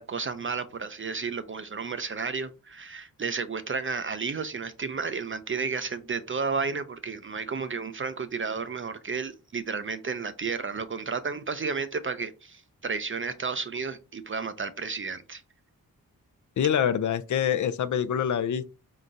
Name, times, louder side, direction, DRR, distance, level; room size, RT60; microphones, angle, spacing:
voice 1, 0.0-15.4, right 5 dB, 35° right, 0.4 m, -32 dB
voice 2, 16.6-18.7, left 9 dB, 55° left, 0.5 m, -25 dB
4.4 x 3.8 x 2.5 m
wide cardioid pair, 85°, 36 cm